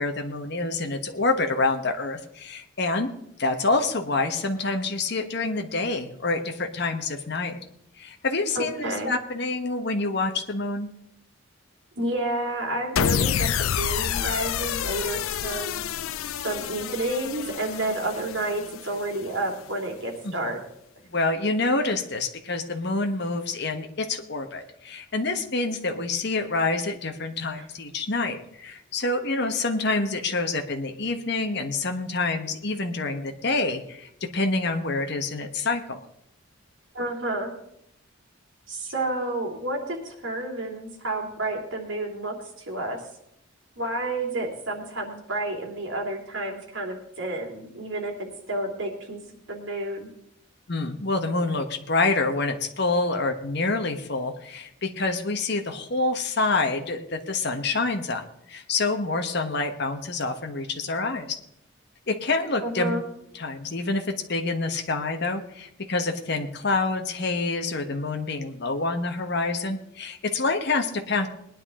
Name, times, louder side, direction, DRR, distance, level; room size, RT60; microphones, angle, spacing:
voice 1, 0.0-7.6 8.0-10.9 20.2-20.3 21.0-36.0 50.7-61.4 62.1-62.9 63.3-71.3, left 3 dB, 55° left, 5 dB, 1.2 m, -27 dB
voice 2, 8.5-9.1 11.9-15.8 16.4-20.6 27.5-27.7 36.9-37.5 38.7-43.0 43.8-49.2 49.5-50.1 62.6-63.0, right 2 dB, 65° right, 1 dB, 2.9 m, -30 dB
sound 1, 13.0-19.3, left 9 dB, 85° left, 0.4 m, -28 dB
20.0 x 10.0 x 3.7 m, 0.76 s
head